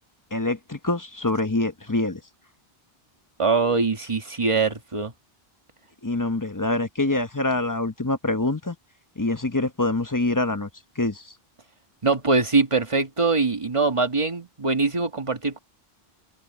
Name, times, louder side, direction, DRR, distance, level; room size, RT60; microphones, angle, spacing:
voice 1, 0.3-2.2 6.0-8.8 9.2-10.7 10.9-11.3, left 2 dB, 20° left, 0.8 m, -25 dB
voice 2, 3.4-5.1 12.0-15.6, right 4 dB, 30° right, 1.6 m, -23 dB
omnidirectional pair, 1.1 m